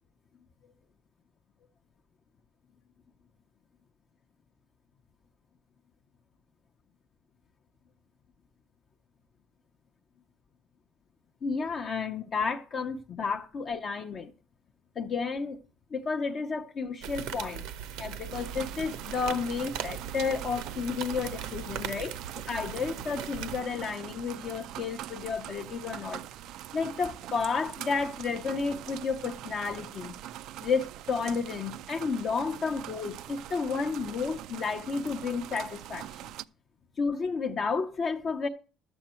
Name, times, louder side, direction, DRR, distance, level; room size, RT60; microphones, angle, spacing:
voice 1, 11.4-14.3 15.0-15.6 15.9-17.6 18.0-22.1 22.5-26.2 26.7-30.1 30.6-36.2 37.0-38.5, left 5 dB, 30° left, 0.7 m, -31 dB
sound 1, 17.0-23.6, right 9 dB, 85° right, 1.0 m, -39 dB
sound 2, 18.3-36.4, right 12 dB, 60° right, 0.4 m, -43 dB
12.0 x 7.9 x 4.3 m
cardioid pair, 170°, 0 cm